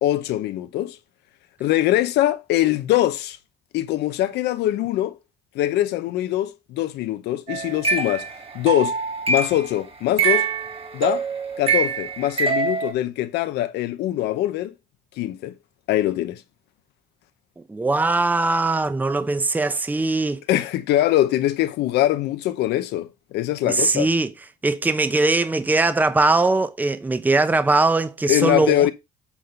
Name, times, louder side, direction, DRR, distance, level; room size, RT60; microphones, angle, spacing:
voice 1, 0.0-1.0 1.6-3.4 3.7-5.2 5.5-8.3 8.5-9.0 9.3-10.5 10.9-11.2 11.6-14.7 15.2-15.5 15.9-16.4 20.5-24.1 28.3-28.9, left 13 dB, 80° left, 0.8 m, -22 dB
sound 1, 7.5-9.7 10.2-12.9, right 5 dB, 35° right, 2.0 m, -24 dB
voice 2, 17.7-20.4 23.6-24.3 24.6-28.9, right 3 dB, 10° right, 0.7 m, -20 dB
8.4 x 3.8 x 5.3 m
cardioid pair, 110°, 17 cm